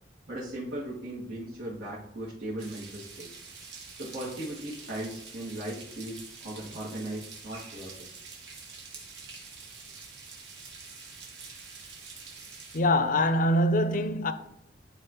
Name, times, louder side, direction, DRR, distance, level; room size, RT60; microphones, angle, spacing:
voice 1, 0.3-3.4 3.9-8.1, right 1 dB, 85° right, 2.0 m, -38 dB
sound 1, 2.6-12.8, right 5 dB, 70° right, 1.5 m, -46 dB
voice 2, 12.7-14.3, left 1 dB, 50° left, 0.6 m, -24 dB
11.0 x 4.3 x 3.0 m
head